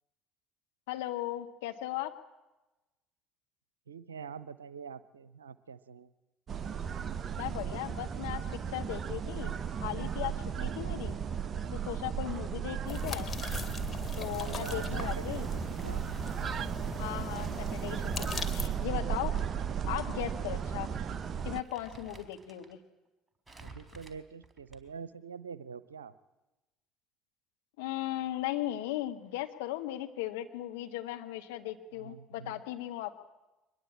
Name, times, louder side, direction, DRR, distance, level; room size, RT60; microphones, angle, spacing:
voice 1, 0.9-2.1 7.4-9.5 9.8-10.3 10.6-11.2 11.7-13.3 14.2-15.5 17.0-19.3 19.9-20.9 21.4-22.8 27.8-33.3, left 14 dB, 65° left, 5 dB, 1.8 m, -37 dB
voice 2, 3.9-6.1 10.5-10.8 12.2-12.4 14.4-16.0 23.6-26.1 31.9-32.6, right 6 dB, 80° right, 17 dB, 0.9 m, -45 dB
sound 1, 6.5-21.6, right 7 dB, 35° right, 0.8 m, -35 dB
sound 2, 12.9-18.7, left 6 dB, 25° left, 3.3 m, -40 dB
Crumpling crinkling, 15.4-16.4 17.3-19.4 19.8-19.9 20.7-20.9 21.2-22.8 23.5-25.1, right 3 dB, 10° right, 4.1 m, -55 dB
24.0 x 21.0 x 8.8 m, 1.0 s
figure-of-eight pair, 60°, 0 cm